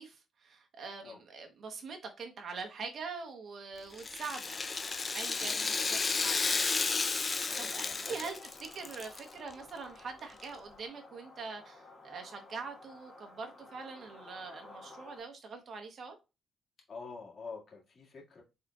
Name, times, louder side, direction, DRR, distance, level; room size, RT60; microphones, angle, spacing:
voice 1, 0.0-4.6 5.1-6.7 7.6-8.4 8.7-16.2, right 4 dB, 55° right, 1.0 m, -43 dB
Rattle (instrument), 3.9-9.2 9.5-9.6 10.4-10.5, left 4 dB, 35° left, 0.5 m, -33 dB
sound 1, 4.4-15.2, left 2 dB, 10° left, 1.7 m, -54 dB
voice 2, 7.4-8.3 16.9-18.4, left 4 dB, 50° left, 1.9 m, -47 dB
4.3 x 3.7 x 2.4 m
cardioid pair, 90°, 0 cm